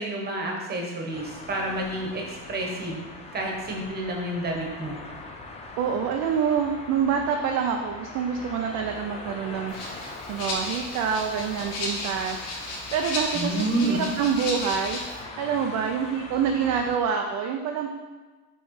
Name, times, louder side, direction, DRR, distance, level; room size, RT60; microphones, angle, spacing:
voice 1, 0.0-3.0 3.3-5.0 13.3-14.0, right 1 dB, 25° right, 0 dB, 1.1 m, -29 dB
sound 1, 1.1-17.0, left 3 dB, 15° left, 0.4 m, -42 dB
voice 2, 5.8-17.9, right 7 dB, 45° right, 2 dB, 0.5 m, -27 dB
Rattle (instrument), 9.7-15.2, left 2 dB, 80° left, 1.9 m, -34 dB
6.5 x 3.2 x 4.6 m, 1.3 s
cardioid pair, 140°, 42 cm